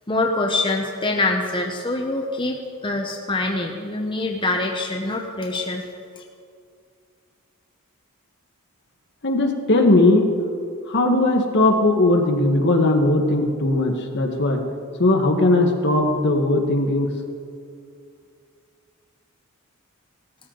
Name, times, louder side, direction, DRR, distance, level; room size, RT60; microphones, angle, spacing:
voice 1, 0.1-5.9, left 2 dB, 20° left, 1 dB, 0.9 m, -24 dB
voice 2, 9.2-10.3 10.9-14.6 15.0-17.1, left 2 dB, 55° left, 3 dB, 1.4 m, -18 dB
17.0 x 13.5 x 3.9 m, 2.3 s
head